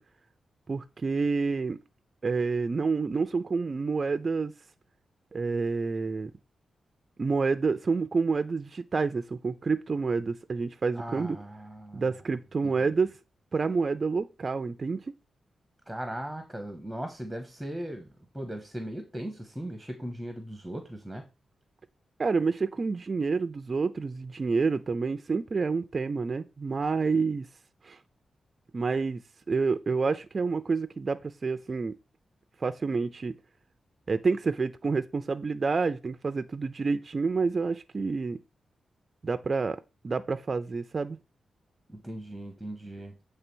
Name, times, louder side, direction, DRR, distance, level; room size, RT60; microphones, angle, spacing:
voice 1, 0.7-1.8 2.2-4.5 5.3-6.3 7.2-11.4 11.9-13.2 13.5-15.0 22.2-27.5 27.8-28.0 28.7-29.2 29.5-31.9 32.6-33.3 34.1-38.4 39.2-41.2, right 4 dB, 30° right, 0.4 m, -28 dB
voice 2, 11.0-12.0 12.6-12.9 15.9-18.1 18.3-21.3 41.9-43.2, right 1 dB, ahead, 0.9 m, -38 dB
7.9 x 3.3 x 6.1 m
wide cardioid pair, 175°, 0 cm